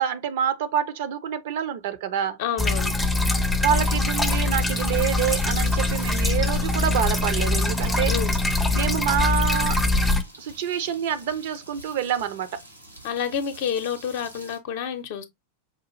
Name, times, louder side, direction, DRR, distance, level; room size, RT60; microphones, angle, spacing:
voice 1, 0.0-2.4 3.6-8.1 8.7-9.8 10.4-12.6, right 8 dB, 55° right, 0.5 m, -27 dB
voice 2, 2.4-2.9 8.1-8.4 13.0-15.3, left 8 dB, 50° left, 0.6 m, -29 dB
sound 1, 2.6-10.2, left 2 dB, 5° left, 0.5 m, -23 dB
sound 2, 3.7-14.6, right 1 dB, 90° right, 1.2 m, -46 dB
5.0 x 2.4 x 2.9 m
figure-of-eight pair, 90°, 0 cm